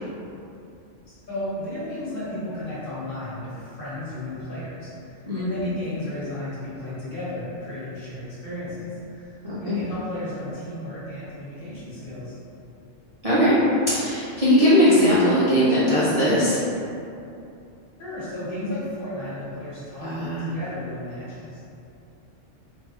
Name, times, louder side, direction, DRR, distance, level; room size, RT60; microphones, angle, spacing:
voice 1, 1.1-12.4 18.0-21.6, left 1 dB, 45° left, -11 dB, 1.2 m, -34 dB
voice 2, 9.5-9.8 13.2-13.6 13.9-16.6 20.0-20.5, equal, 45° right, -11 dB, 0.5 m, -19 dB
3.4 x 2.5 x 3.1 m, 2.7 s
omnidirectional pair, 1.3 m